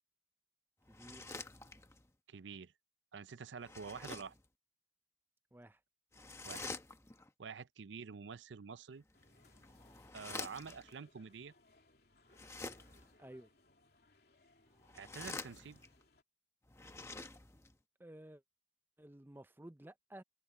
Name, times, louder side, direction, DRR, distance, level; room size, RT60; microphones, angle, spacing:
sound 1, 0.9-2.1 3.6-4.5 6.1-7.3 9.1-10.9 12.3-13.1 14.7-16.0 16.7-17.7, left 3 dB, 15° left, 1.0 m, -48 dB
voice 1, 0.9-1.3 5.5-5.8 13.2-13.5 18.0-18.4 19.0-20.2, right 1 dB, 10° right, 0.5 m, -53 dB
voice 2, 2.3-2.7 3.1-4.3 6.4-6.7 7.4-9.0 10.1-11.5 14.9-15.8, right 5 dB, 85° right, 0.5 m, -48 dB
sound 2, 9.1-16.2, left 2 dB, 60° left, 2.9 m, -68 dB
head